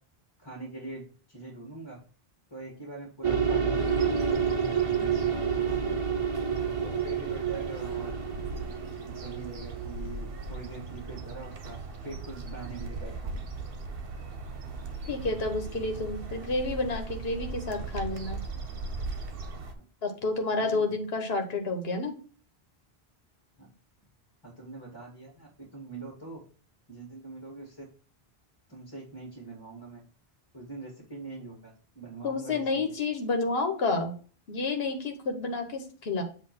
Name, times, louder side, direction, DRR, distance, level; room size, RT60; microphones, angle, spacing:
voice 1, 0.4-2.0 2.5-6.0 6.8-8.2 9.1-11.8 12.0-13.4 20.5-20.8 23.6-23.7 24.4-26.4 26.9-27.8 28.7-30.0 30.5-32.8, right 2 dB, 20° left, -1 dB, 1.9 m, -43 dB
sound 1, 3.2-10.3, right 6 dB, 35° right, 0.9 m, -29 dB
sound 2, 3.7-19.7, right 4 dB, 65° right, 1.1 m, -39 dB
voice 2, 15.1-18.4 20.0-22.1 32.2-34.1 34.5-36.2, left 3 dB, 75° left, 3 dB, 1.4 m, -30 dB
7.8 x 3.0 x 6.0 m, 0.39 s
omnidirectional pair, 1.0 m